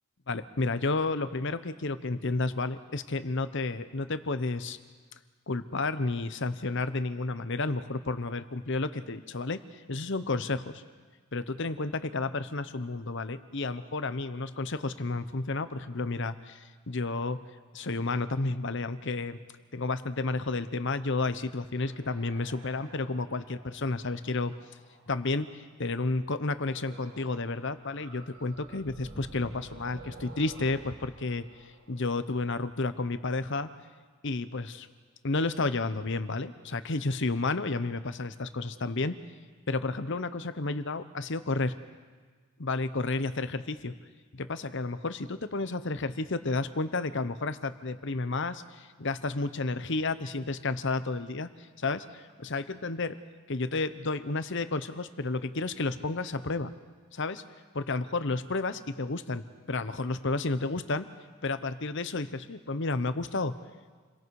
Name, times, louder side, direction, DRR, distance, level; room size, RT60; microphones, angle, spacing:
voice 1, 0.3-4.8 5.5-10.8 11.3-17.4 17.7-19.4 19.7-24.5 25.1-33.7 34.2-34.9 35.2-39.1 39.7-41.7 42.6-43.9 44.3-51.5 51.8-53.1 53.5-56.7 57.1-57.4 57.7-61.1 61.4-63.5, left 3 dB, 55° left, 12 dB, 0.9 m, -31 dB
sound 1, 21.8-25.6 26.7-27.5 27.7-32.6, right 2 dB, 90° right, 3.2 m, -51 dB
29.0 x 22.5 x 4.8 m, 1.5 s
head